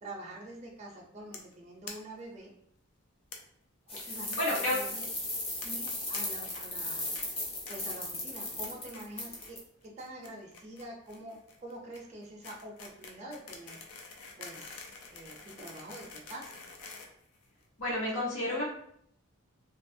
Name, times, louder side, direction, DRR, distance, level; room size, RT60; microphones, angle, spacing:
voice 1, 0.0-2.5 3.9-5.1 5.6-7.1 7.7-14.0 14.4-14.8 15.1-16.6, right 1 dB, 30° right, -1 dB, 0.4 m, -46 dB
sound 1, 1.3-1.5 1.8-1.9 2.2-2.3 2.5-2.6 3.3-3.4 3.9-4.6 4.9-5.1 5.6-6.2 6.5-6.8 7.1-7.2 7.7-8.0 8.3-8.7 8.9-9.5 9.8-17.9, left 4 dB, 90° left, 0.5 m, -47 dB
sound 2, 3.9-9.6, left 2 dB, 25° left, 0.6 m, -36 dB
voice 2, 4.4-4.7 17.8-18.6, left 1 dB, 65° left, -4 dB, 1.0 m, -30 dB
2.7 x 2.3 x 2.6 m, 0.68 s
head